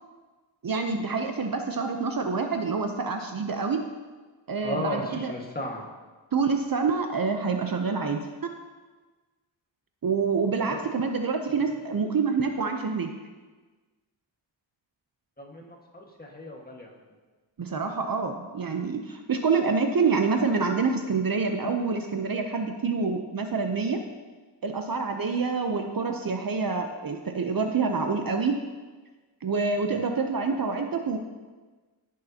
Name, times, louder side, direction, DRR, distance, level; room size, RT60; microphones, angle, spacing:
voice 1, 0.6-3.8 4.5-5.3 6.3-8.3 10.0-13.1 17.6-24.0 24.6-28.6 29.4-31.2, right 4 dB, 45° right, 5 dB, 0.7 m, -27 dB
voice 2, 4.6-5.9 10.7-10.8 11.5-11.6 15.4-17.0, left 1 dB, 20° left, -1 dB, 1.6 m, -35 dB
16.0 x 6.6 x 2.8 m, 1.3 s
wide cardioid pair, 95°, 47 cm